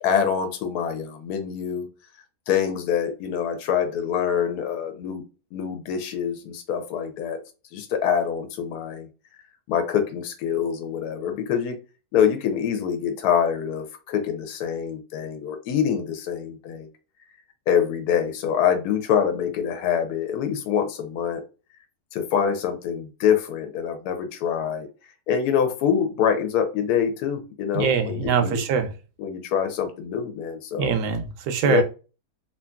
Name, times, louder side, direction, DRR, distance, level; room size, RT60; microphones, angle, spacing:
voice 1, 0.0-1.9 2.5-5.2 5.5-7.4 7.7-9.1 9.7-11.8 12.1-16.9 17.7-21.4 22.1-24.9 25.3-28.6 29.2-31.0 31.6-31.8, left 8 dB, 75° left, 1.1 m, -25 dB
voice 2, 27.7-28.9 30.8-31.8, right 6 dB, 85° right, 1.2 m, -23 dB
2.9 x 2.5 x 2.2 m
omnidirectional pair, 1.7 m